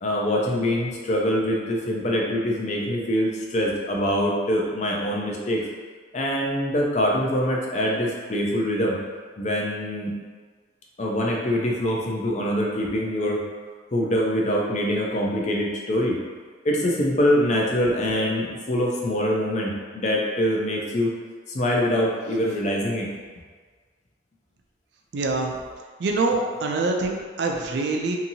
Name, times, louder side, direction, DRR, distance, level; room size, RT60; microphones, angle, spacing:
voice 1, 0.0-5.6 6.1-9.0 9.4-10.1 11.0-13.4 13.9-16.2 16.6-21.1 21.5-23.1, equal, 35° left, -2 dB, 0.4 m, -24 dB
voice 2, 25.1-25.6 26.0-28.2, right 3 dB, 60° right, 2 dB, 0.3 m, -25 dB
2.7 x 2.6 x 2.7 m, 1.5 s
head